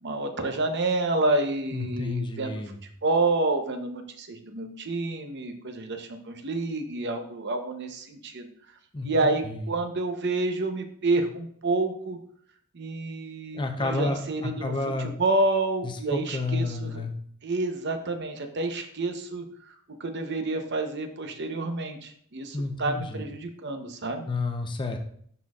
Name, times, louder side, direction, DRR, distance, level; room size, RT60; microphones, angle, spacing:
voice 1, 0.0-2.6 3.0-8.5 9.0-12.2 12.7-17.0 17.4-19.7 20.0-24.3, right 2 dB, 50° right, 6 dB, 0.8 m, -29 dB
voice 2, 1.7-2.8 8.9-9.1 9.5-9.6 13.5-15.1 16.1-17.1 22.5-23.2 24.3-25.0, left 3 dB, 20° left, 4 dB, 0.6 m, -30 dB
11.0 x 4.1 x 2.4 m, 0.63 s
head